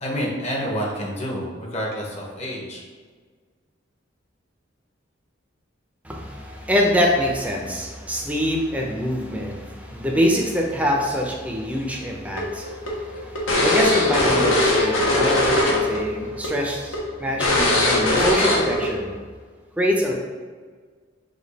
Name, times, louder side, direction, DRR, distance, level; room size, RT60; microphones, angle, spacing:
voice 1, 0.0-2.8, equal, 35° left, -2 dB, 0.8 m, -28 dB
voice 2, 6.0-19.1 19.8-20.1, equal, 5° right, -1 dB, 0.5 m, -25 dB
sound 1, 12.4-16.0 16.3-16.5 16.9-17.0 17.4-18.9, left 1 dB, 80° left, 0.9 m, -20 dB
5.0 x 2.3 x 4.1 m, 1.5 s
head